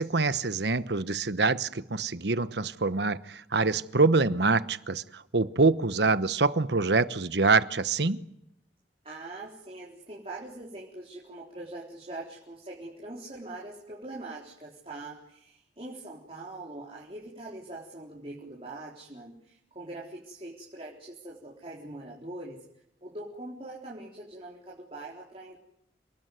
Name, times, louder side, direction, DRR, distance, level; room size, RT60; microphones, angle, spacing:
voice 1, 0.0-8.2, right 3 dB, 75° right, 1.1 m, -25 dB
voice 2, 9.0-22.6 23.0-25.6, right 2 dB, 35° right, 4.0 m, -42 dB
29.0 x 19.5 x 9.4 m
head